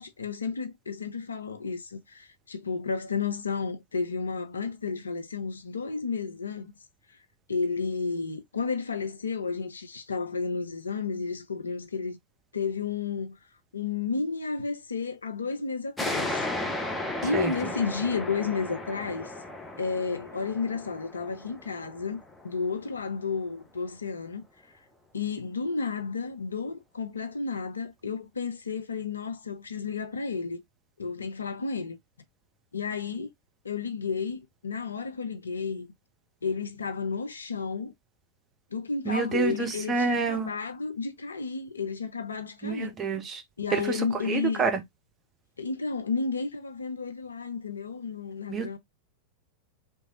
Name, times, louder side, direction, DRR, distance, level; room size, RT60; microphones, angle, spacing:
voice 1, 0.0-6.7 7.5-12.2 12.5-13.4 13.7-16.3 16.9-19.3 19.8-24.4 25.1-30.6 31.0-32.0 32.7-33.3 33.6-35.9 36.4-37.9 38.7-42.9 43.6-44.7 45.6-48.8, left 5 dB, 75° left, 0.5 m, -32 dB
sound 1, 16.0-23.1, left 2 dB, 10° left, 0.7 m, -35 dB
voice 2, 39.1-40.5 42.6-43.4 43.7-44.0 44.3-44.8 48.5-48.8, right 5 dB, 25° right, 0.7 m, -28 dB
3.0 x 2.3 x 2.7 m
figure-of-eight pair, 90°, 0 cm